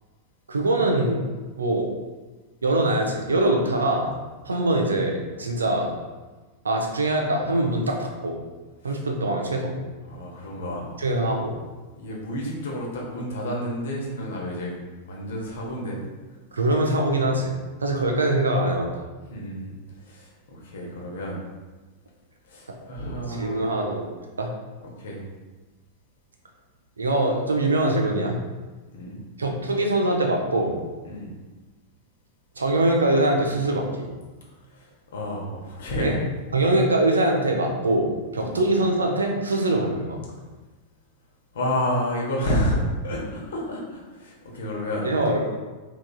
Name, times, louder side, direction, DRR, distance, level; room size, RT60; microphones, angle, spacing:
voice 1, 0.5-1.2 1.6-1.9 2.6-4.1 4.4-5.9 6.6-8.4 8.8-9.8 11.0-11.5 16.5-17.5 17.8-19.0 23.4-24.1 24.4-24.5 27.0-28.4 29.4-30.8 32.6-34.1 36.0-36.2 36.5-40.2 45.0-45.5, right 1 dB, 75° right, 1 dB, 0.5 m, -23 dB
voice 2, 10.1-10.9 12.0-14.7 15.1-16.0 19.3-19.7 20.0-21.4 22.4-23.8 25.0-25.2 28.9-29.2 31.0-31.3 34.7-36.2 38.4-38.6 41.5-45.1, equal, 60° left, -2 dB, 0.8 m, -30 dB
3.4 x 2.9 x 2.2 m, 1.3 s
figure-of-eight pair, 90°, 0 cm